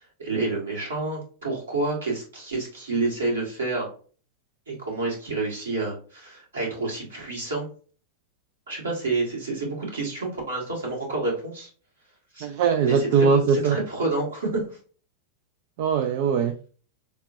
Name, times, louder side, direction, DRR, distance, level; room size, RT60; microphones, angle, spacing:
voice 1, 0.2-3.9 4.7-7.7 8.7-11.7 12.3-12.5 12.8-14.7, right 3 dB, 70° right, -3 dB, 2.0 m, -29 dB
voice 2, 12.4-13.8 15.8-16.7, right 6 dB, 50° right, 8 dB, 0.4 m, -21 dB
6.5 x 2.2 x 2.6 m, 0.40 s
figure-of-eight pair, 90°, 0 cm